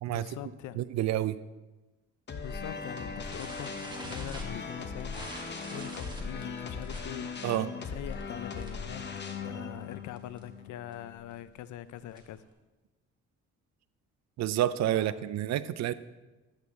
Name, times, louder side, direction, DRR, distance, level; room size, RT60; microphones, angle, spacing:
voice 1, 0.1-0.8 2.4-5.3 5.7-7.5 7.8-9.0 9.4-12.5 14.9-15.1, left 12 dB, 75° left, 15 dB, 0.5 m, -43 dB
voice 2, 0.8-1.4 7.4-7.7 14.4-15.9, right 12 dB, 65° right, 15 dB, 0.5 m, -29 dB
sound 1, 2.3-11.4, left 4 dB, 35° left, 1.1 m, -39 dB
sound 2, 3.3-8.9 9.2-9.5 9.8-9.9 10.2-10.4 10.9-12.5, right 1 dB, 15° right, 1.9 m, -46 dB
11.5 x 8.2 x 3.2 m, 1.1 s
cardioid pair, 90°, 30 cm